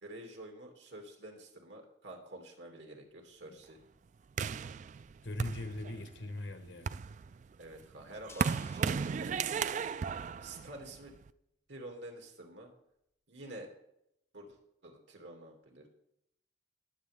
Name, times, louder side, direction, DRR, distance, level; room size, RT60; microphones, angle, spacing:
voice 1, 0.0-3.8 7.6-9.8 10.4-11.1 11.7-12.7 13.3-13.7 14.3-15.9, right 1 dB, 85° right, 2.7 m, -49 dB
sound 1, 4.4-6.2 6.7-11.3, right 6 dB, 40° right, 0.3 m, -35 dB
voice 2, 5.2-6.9, left 1 dB, 85° left, 1.3 m, -40 dB
sound 2, 8.3-11.1, left 3 dB, 15° left, 0.6 m, -58 dB
19.5 x 7.6 x 3.6 m
head